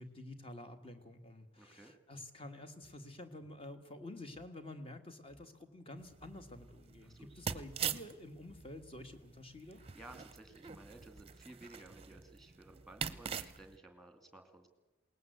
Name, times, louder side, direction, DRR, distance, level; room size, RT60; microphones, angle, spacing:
voice 1, 0.0-9.8, left 1 dB, 30° left, 8 dB, 1.7 m, -50 dB
voice 2, 1.6-1.9 7.0-7.4 9.6-14.7, right 2 dB, ahead, 6 dB, 2.5 m, -56 dB
sound 1, 2.1-4.6 4.8-4.9 5.2-5.5 6.1-6.5 6.9-7.4 8.4-8.8 9.6-9.7 9.9-10.6, right 2 dB, 50° left, 2.0 m, -67 dB
sound 2, 6.0-13.8, right 7 dB, 30° right, 0.8 m, -44 dB
21.5 x 19.0 x 8.0 m, 1.1 s
head